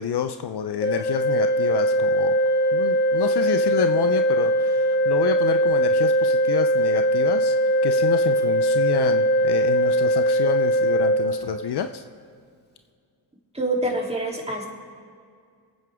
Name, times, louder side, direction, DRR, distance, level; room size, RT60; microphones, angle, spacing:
voice 1, 0.0-2.4 2.7-7.6 7.8-12.0, left 8 dB, 60° left, 9 dB, 0.7 m, -28 dB
Organ, 0.8-11.8, equal, 20° left, 1.8 m, -21 dB
voice 2, 13.5-14.7, right 1 dB, 15° right, -1 dB, 3.3 m, -26 dB
24.5 x 9.2 x 3.7 m, 2.2 s
supercardioid pair, 55°, 46 cm